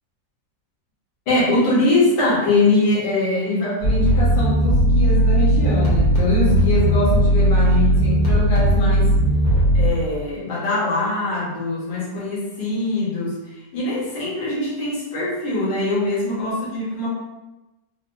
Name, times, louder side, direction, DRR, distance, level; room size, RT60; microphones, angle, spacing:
voice 1, 1.3-9.1 9.7-13.3 13.7-17.1, left 2 dB, 75° left, -7 dB, 1.7 m, -22 dB
sound 1, 3.8-9.9, right 1 dB, 60° left, 1.3 m, -17 dB
3.9 x 2.1 x 2.5 m, 1.0 s
omnidirectional pair, 2.0 m